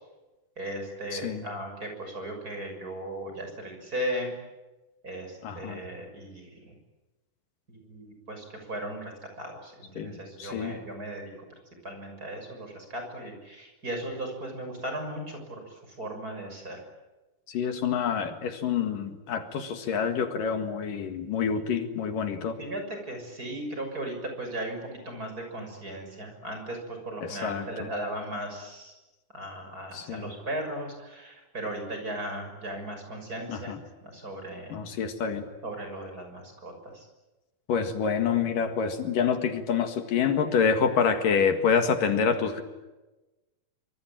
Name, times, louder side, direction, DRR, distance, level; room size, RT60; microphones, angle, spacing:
voice 1, 0.6-4.3 5.0-6.7 7.7-11.3 11.8-15.6 16.0-16.8 22.6-22.8 23.1-28.9 29.3-33.7 34.0-34.8 35.6-37.1, right 1 dB, 25° right, 4 dB, 6.8 m, -37 dB
voice 2, 1.1-1.5 5.4-5.8 10.0-10.8 17.5-22.6 27.2-27.9 29.9-30.3 33.5-33.8 34.7-35.5 37.7-42.6, left 6 dB, 75° left, 7 dB, 3.5 m, -27 dB
25.5 x 24.5 x 9.0 m, 1.1 s
omnidirectional pair, 3.9 m